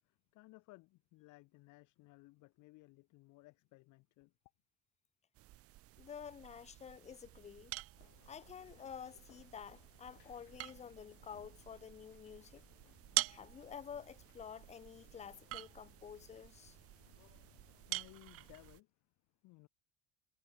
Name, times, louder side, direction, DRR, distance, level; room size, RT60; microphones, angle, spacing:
voice 1, 0.0-4.3 17.2-17.6 17.9-19.1 19.4-19.7, left 22 dB, 70° left, 3.7 m, -61 dB
sound 1, 5.3-18.8, right 16 dB, 50° right, 0.7 m, -46 dB
voice 2, 6.0-7.7 8.3-12.6 13.3-16.8, left 7 dB, 20° left, 0.5 m, -50 dB
sound 2, 7.9-18.7, left 40 dB or more, 85° left, 4.0 m, -68 dB
sound 3, 8.1-13.6, left 14 dB, 50° left, 2.8 m, -73 dB
cardioid pair, 125°, 31 cm